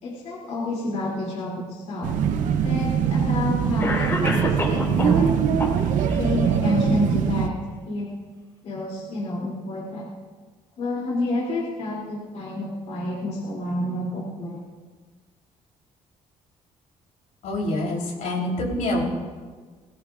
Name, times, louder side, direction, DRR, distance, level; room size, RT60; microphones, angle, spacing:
voice 1, 0.0-2.1 2.6-5.3 6.2-7.5 7.8-8.1 8.6-10.1 10.8-14.6, left 2 dB, 65° left, -4 dB, 3.0 m, -29 dB
sound 1, 2.0-7.5, right 8 dB, 85° right, 0.8 m, -22 dB
Cough, 2.1-2.2 3.2-3.3 3.8-5.2 5.6-6.2, left 2 dB, 20° left, 2.5 m, -28 dB
voice 2, 17.4-19.0, left 1 dB, 80° left, -2 dB, 3.6 m, -26 dB
20.5 x 17.0 x 2.5 m, 1.5 s
cardioid pair, 140°, 13 cm